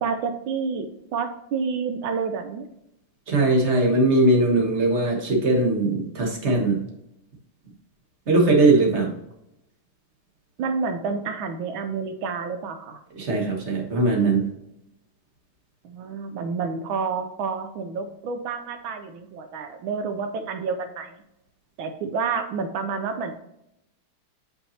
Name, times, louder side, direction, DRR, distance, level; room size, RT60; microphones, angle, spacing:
voice 1, 0.0-2.7 10.6-13.0 15.8-21.1 21.8-23.4, right 5 dB, 75° right, 7 dB, 1.3 m, -29 dB
voice 2, 3.3-6.8 8.3-9.1 13.2-14.5, right 2 dB, 35° right, 0 dB, 1.4 m, -20 dB
6.9 x 5.6 x 2.8 m, 0.84 s
omnidirectional pair, 2.4 m